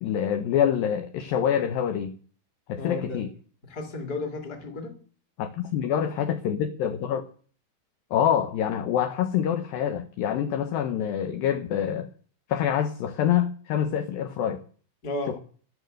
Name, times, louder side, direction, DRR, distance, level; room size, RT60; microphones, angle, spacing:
voice 1, 0.0-2.2 2.7-3.3 5.4-7.2 8.1-12.1 12.5-14.6 15.3-15.4, left 9 dB, 75° left, 2.2 m, -26 dB
voice 2, 2.8-3.2 3.7-4.9 15.0-15.4, left 2 dB, 30° left, 2.2 m, -33 dB
11.5 x 11.0 x 6.5 m
omnidirectional pair, 5.0 m